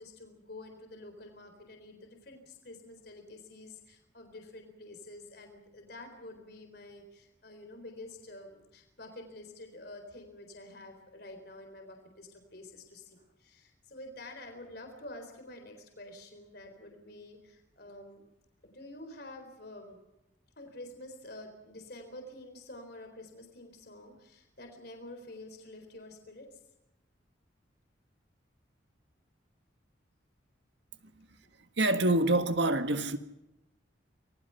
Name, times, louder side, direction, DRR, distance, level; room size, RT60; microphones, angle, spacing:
voice 1, 0.0-18.2 18.6-20.0 20.6-26.6, left 1 dB, 55° left, 4.0 m, -48 dB
voice 2, 31.8-33.2, right 1 dB, 65° right, 1.7 m, -26 dB
27.0 x 21.0 x 5.8 m
head